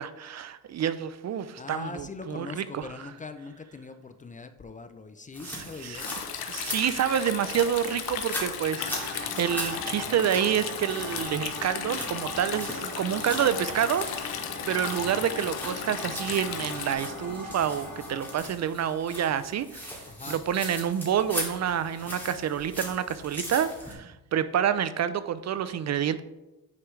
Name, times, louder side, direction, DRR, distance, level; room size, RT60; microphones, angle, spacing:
voice 1, 0.0-3.1 5.4-6.1 6.5-26.2, right 9 dB, 45° right, 13 dB, 0.4 m, -28 dB
voice 2, 1.6-6.2 20.1-20.4, left 4 dB, 20° left, 9 dB, 0.4 m, -41 dB
sound 1, 5.3-23.9, left 1 dB, 5° left, 2.3 m, -40 dB
Stream, 5.9-16.9, left 8 dB, 80° left, 0.9 m, -36 dB
sound 2, 8.8-18.4, left 1 dB, 60° left, 2.3 m, -40 dB
9.4 x 4.7 x 3.2 m, 1.0 s
cardioid pair, 100°, 37 cm